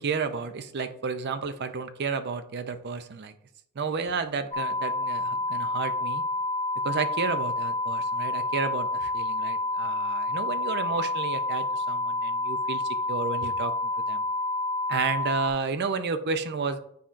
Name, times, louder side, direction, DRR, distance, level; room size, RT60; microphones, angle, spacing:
voice 1, 0.0-3.3 3.8-6.2 6.8-12.8 13.1-14.2 14.9-16.8, right 5 dB, 50° right, 10 dB, 0.5 m, -31 dB
sound 1, 4.5-15.5, left 2 dB, 15° left, 0.8 m, -29 dB
9.3 x 4.2 x 2.5 m, 0.71 s
head